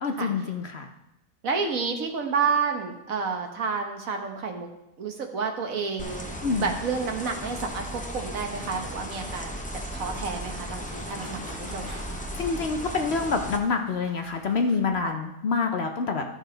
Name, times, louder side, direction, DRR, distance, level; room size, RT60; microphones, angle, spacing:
voice 1, 0.0-0.9 6.4-6.7 12.4-16.2, left 4 dB, 55° left, 4 dB, 0.9 m, -27 dB
voice 2, 1.4-4.7 5.0-6.3 6.6-9.6 9.9-12.0 15.0-15.1, right 5 dB, 70° right, 4 dB, 1.5 m, -30 dB
sound 1, 6.0-13.6, equal, 10° left, 0.6 m, -36 dB
sound 2, 10.2-15.1, equal, 20° right, 4.0 m, -50 dB
14.0 x 6.2 x 3.9 m, 0.90 s
omnidirectional pair, 1.5 m